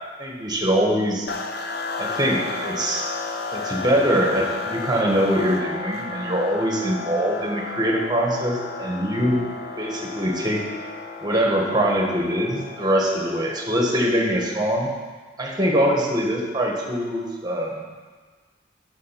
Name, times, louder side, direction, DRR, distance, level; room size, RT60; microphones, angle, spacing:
voice 1, 0.2-1.3 2.0-3.1 3.5-9.4 9.8-10.6 11.2-14.9 15.4-17.8, equal, 20° right, 0 dB, 1.3 m, -23 dB
sound 1, 1.3-14.7, left 4 dB, 60° left, 0.7 m, -33 dB
7.5 x 6.6 x 5.6 m, 1.4 s
head